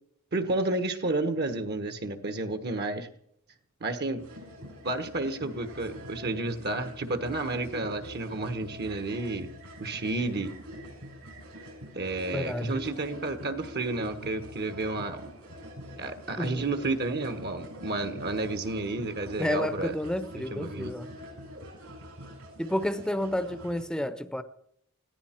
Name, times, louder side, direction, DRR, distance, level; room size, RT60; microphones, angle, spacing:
voice 1, 0.3-3.1 3.8-4.3 4.8-9.5 9.8-10.5 11.9-15.3 16.0-19.9 20.5-20.9, right 2 dB, 50° right, 9 dB, 1.2 m, -31 dB
sound 1, 4.2-23.8, equal, 75° right, 7.4 m, -44 dB
voice 2, 12.3-12.8 16.4-16.7 19.4-21.1 22.6-24.4, left 1 dB, 5° left, 12 dB, 0.8 m, -30 dB
21.0 x 15.5 x 4.4 m, 0.71 s
head